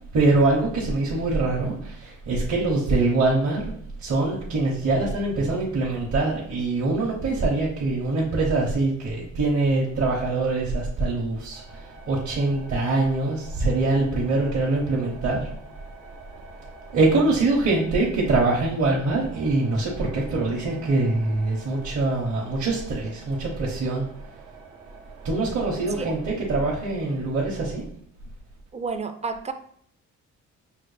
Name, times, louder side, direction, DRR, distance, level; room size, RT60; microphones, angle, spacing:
voice 1, 0.1-3.7 4.0-15.5 16.9-24.1 25.2-27.8, right 2 dB, 55° right, -4 dB, 1.0 m, -24 dB
sound 1, 11.5-26.3, right 3 dB, 90° right, 0.9 m, -47 dB
voice 2, 28.7-29.5, right 4 dB, 25° right, 8 dB, 0.4 m, -31 dB
5.7 x 2.1 x 3.2 m, 0.65 s
cardioid pair, 90°, 30 cm